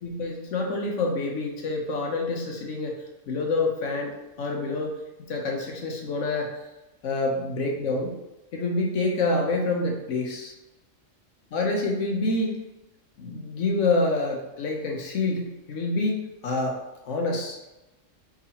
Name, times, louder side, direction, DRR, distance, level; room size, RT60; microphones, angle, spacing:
voice 1, 0.0-2.9 3.3-4.9 5.3-6.5 7.0-8.1 8.5-10.5 11.5-12.6 13.2-16.8 17.0-17.6, left 2 dB, 75° left, 0 dB, 1.1 m, -27 dB
4.8 x 3.6 x 2.9 m, 0.99 s
omnidirectional pair, 1.3 m